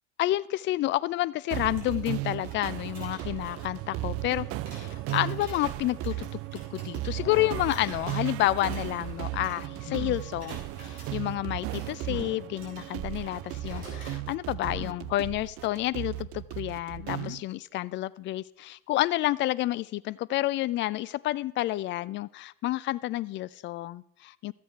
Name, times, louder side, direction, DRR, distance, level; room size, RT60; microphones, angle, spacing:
voice 1, 0.2-4.5 4.8-6.4 6.7-10.6 10.9-24.5, left 16 dB, 30° left, 19 dB, 0.3 m, -30 dB
sound 1, 1.5-17.4, right 16 dB, 35° right, 0.4 m, -36 dB
sound 2, 1.8-9.9 10.1-11.1 11.6-14.2, right 1 dB, 80° right, 3.9 m, -49 dB
sound 3, 7.2-7.8 9.9-10.3 12.0-12.3 14.6-15.1 16.9-17.4, left 13 dB, 60° left, 1.2 m, -41 dB
13.0 x 8.5 x 4.5 m, 0.74 s
hypercardioid pair, 75°, 41 cm